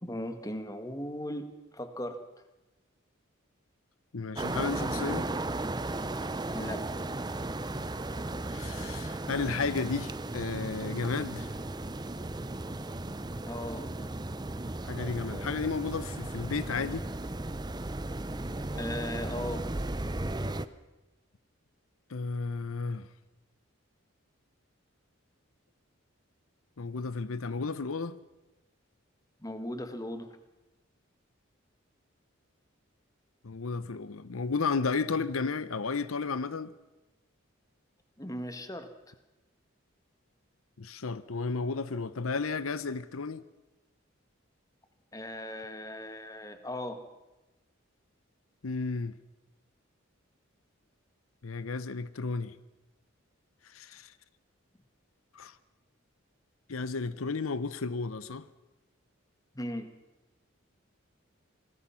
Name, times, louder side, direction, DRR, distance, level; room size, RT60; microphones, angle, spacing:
voice 1, 0.0-2.2 6.5-6.8 13.4-13.9 18.3-19.6 29.4-30.3 38.2-38.9 45.1-47.0 59.5-59.9, left 1 dB, 15° left, 1.7 m, -38 dB
voice 2, 4.1-5.3 8.5-11.5 14.8-17.1 22.1-23.1 26.8-28.2 33.4-36.7 40.8-43.4 48.6-49.2 51.4-52.5 53.7-54.1 55.3-55.5 56.7-58.5, left 4 dB, 90° left, 0.8 m, -33 dB
sound 1, 4.4-20.7, right 2 dB, 20° right, 0.7 m, -35 dB
26.0 x 20.0 x 5.8 m
head